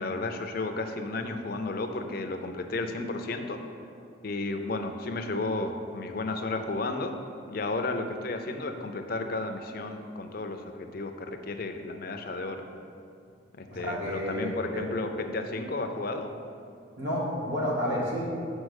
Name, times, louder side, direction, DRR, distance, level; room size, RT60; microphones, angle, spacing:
voice 1, 0.0-3.6 4.2-7.1 7.5-12.7 13.6-16.3, left 2 dB, 50° left, 6 dB, 0.5 m, -33 dB
voice 2, 13.7-14.8 17.0-18.2, equal, 70° right, -5 dB, 1.8 m, -30 dB
6.3 x 5.5 x 6.4 m, 2.5 s
head